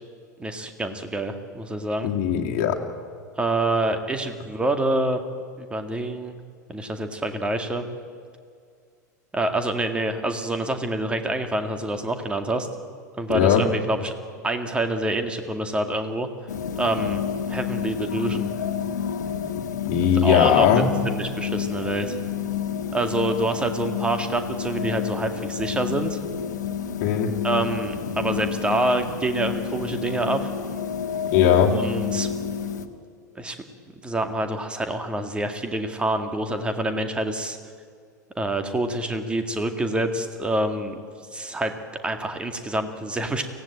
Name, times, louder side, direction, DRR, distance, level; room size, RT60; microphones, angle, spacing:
voice 1, 0.4-2.1 3.4-5.2 5.6-6.4 6.7-7.8 9.3-12.7 13.2-14.1 14.4-16.3 16.8-17.2 17.5-18.5 20.2-22.1 22.9-26.2 27.4-30.5 31.7-32.3 33.4-33.6 34.0-37.6 38.4-41.0 41.3-41.7 42.0-43.4, right 2 dB, 10° right, 7 dB, 2.2 m, -26 dB
voice 2, 2.0-2.8 13.3-13.6 19.9-20.9 27.0-27.3 31.3-31.7, left 9 dB, 40° left, 0 dB, 2.4 m, -19 dB
sound 1, 16.5-32.9, left 8 dB, 65° left, 1.6 m, -30 dB
24.0 x 17.5 x 8.9 m, 2.2 s
figure-of-eight pair, 85°, 10 cm